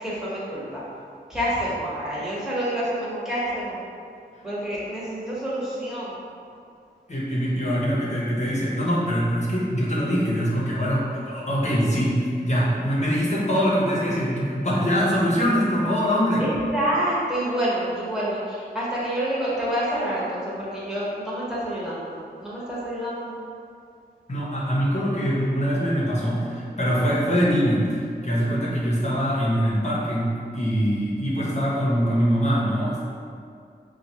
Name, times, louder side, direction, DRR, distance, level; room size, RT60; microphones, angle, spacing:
voice 1, 0.0-0.8 1.3-3.8 4.4-6.2 16.4-23.3, right 1 dB, 5° right, -9 dB, 1.2 m, -28 dB
voice 2, 7.1-16.5 24.3-33.0, equal, 40° left, -6 dB, 0.9 m, -23 dB
5.6 x 2.4 x 2.9 m, 2.3 s
wide cardioid pair, 90°, 18 cm